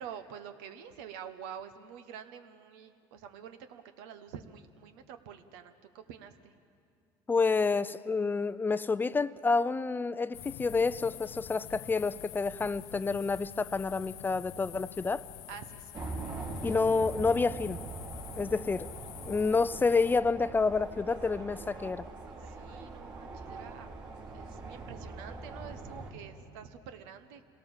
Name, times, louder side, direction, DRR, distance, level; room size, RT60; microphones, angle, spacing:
voice 1, 0.0-6.5 15.5-16.0 22.4-23.9 24.3-27.4, right 8 dB, 85° right, 9 dB, 1.3 m, -47 dB
voice 2, 7.3-15.2 16.6-17.8 18.4-18.9 19.3-22.1, left 4 dB, 20° left, 15 dB, 0.5 m, -29 dB
sound 1, 10.3-20.2, left 14 dB, 80° left, 0.6 m, -46 dB
sound 2, 15.9-26.1, right 3 dB, 45° right, 3.9 m, -42 dB
26.0 x 18.0 x 7.3 m, 2.4 s
supercardioid pair, 105°, 11 cm